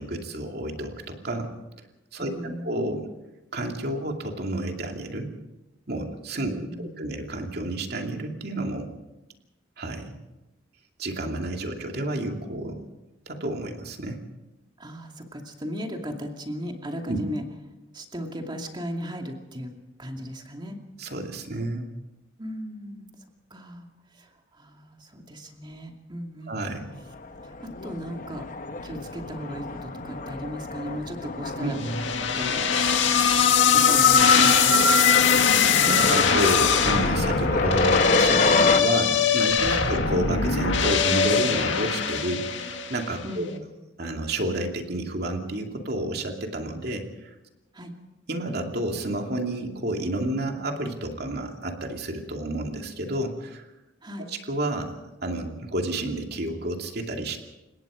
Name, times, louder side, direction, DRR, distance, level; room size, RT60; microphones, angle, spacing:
voice 1, 0.0-1.5 2.1-2.3 2.6-3.0 3.5-5.3 5.9-8.9 9.8-10.2 11.0-12.8 13.3-14.2 17.1-17.2 21.0-21.9 26.5-27.0 31.6-32.1 33.9-34.0 35.9-43.5 44.0-47.1 48.3-53.6 54.3-57.4, right 1 dB, 55° right, 3 dB, 2.7 m, -30 dB
voice 2, 2.2-2.9 6.4-7.1 14.8-17.4 17.9-19.7 20.0-20.8 22.4-26.6 27.4-28.5 28.8-31.9 32.3-32.7 33.7-34.8 39.8-40.0 43.2-43.6 47.7-47.9 54.0-54.3, equal, 25° right, 3 dB, 2.5 m, -36 dB
sound 1, 27.1-38.8, left 3 dB, 45° left, 1.2 m, -29 dB
Metal Screech, 31.8-43.1, left 6 dB, 75° left, 2.0 m, -21 dB
30.0 x 17.5 x 5.1 m, 0.99 s
head